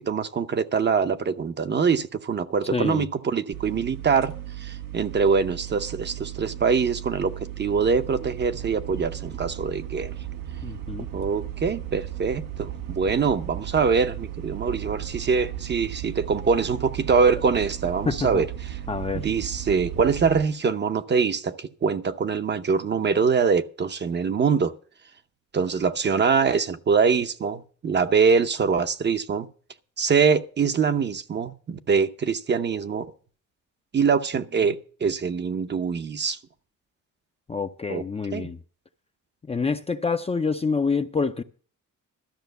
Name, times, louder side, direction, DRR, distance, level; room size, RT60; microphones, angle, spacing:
voice 1, 0.1-4.3 4.6-10.1 11.1-18.5 19.1-24.7 25.5-29.5 30.0-33.1 33.9-36.4 37.9-38.0 38.3-38.5, right 5 dB, 35° right, 0.7 m, -24 dB
voice 2, 2.7-3.1 10.6-11.1 18.1-18.4 18.9-19.3 37.5-38.6 39.5-41.4, left 4 dB, 20° left, 0.5 m, -27 dB
sound 1, 3.5-20.4, right 12 dB, 80° right, 1.3 m, -36 dB
13.0 x 6.1 x 7.9 m
cardioid pair, 135°, 32 cm